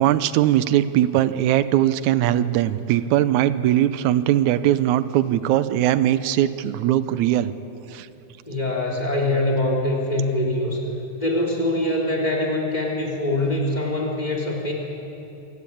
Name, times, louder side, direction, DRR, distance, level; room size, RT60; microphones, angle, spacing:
voice 1, 0.0-7.5 7.9-8.1, right 12 dB, 85° right, 13 dB, 2.1 m, -20 dB
voice 2, 8.5-10.8 11.2-14.7, left 1 dB, 15° left, 0 dB, 3.6 m, -23 dB
26.5 x 17.0 x 8.6 m, 2.9 s
omnidirectional pair, 3.4 m